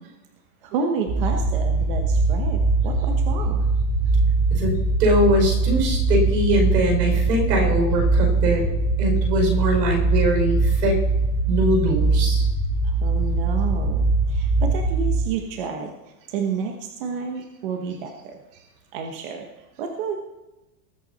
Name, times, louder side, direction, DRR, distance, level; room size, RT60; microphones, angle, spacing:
voice 1, 0.6-3.6 12.8-15.9 16.3-16.7 17.0-18.6 18.9-19.4 19.8-20.2, right 5 dB, 35° right, 4 dB, 1.2 m, -30 dB
sound 1, 1.1-15.2, right 3 dB, 15° right, 2.5 m, -21 dB
voice 2, 5.0-8.6 9.0-10.9 11.5-12.4, right 1 dB, 80° right, 2 dB, 5.3 m, -22 dB
20.0 x 8.2 x 4.1 m, 1.0 s
supercardioid pair, 180°, 48 cm